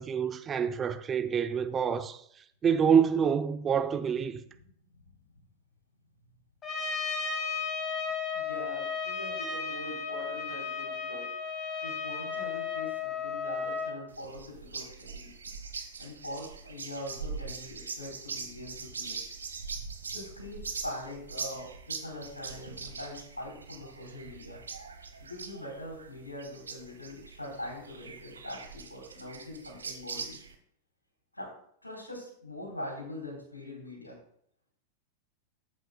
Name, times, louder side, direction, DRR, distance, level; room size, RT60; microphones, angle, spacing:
voice 1, 0.0-2.2 2.6-4.4, right 7 dB, 20° right, 0.7 m, -26 dB
Trumpet, 6.6-14.0, left 5 dB, 25° left, 1.8 m, -34 dB
voice 2, 8.3-11.3 11.8-15.3 16.0-19.2 20.1-24.6 25.2-30.4 31.3-31.5 31.8-34.2, left 1 dB, 85° left, 3.5 m, -42 dB
sound 1, 14.1-30.6, right 5 dB, 75° right, 1.1 m, -42 dB
13.5 x 8.0 x 2.2 m
figure-of-eight pair, 90°, 0 cm